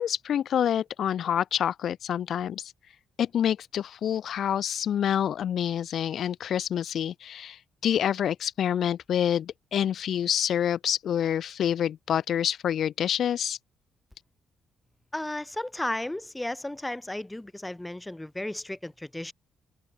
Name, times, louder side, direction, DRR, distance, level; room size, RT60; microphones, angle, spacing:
voice 1, 0.0-2.7 3.2-13.6, left 9 dB, 65° left, 1.0 m, -27 dB
voice 2, 15.1-19.3, left 1 dB, 10° left, 6.2 m, -34 dB
open air
cardioid pair, 90°, 0 cm